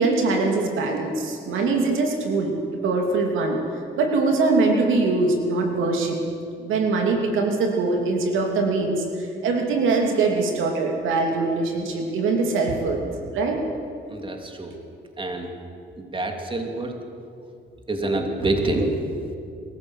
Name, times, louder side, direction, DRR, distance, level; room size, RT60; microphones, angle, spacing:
voice 1, 0.0-3.6 4.0-6.2 6.6-13.0 13.3-13.6, right 3 dB, 85° right, 2 dB, 2.9 m, -22 dB
voice 2, 14.1-14.7 15.2-15.5 16.0-16.9 17.9-19.4, right 2 dB, 25° right, 3 dB, 3.0 m, -26 dB
23.0 x 14.5 x 8.2 m, 2.5 s
cardioid pair, 90°, 20 cm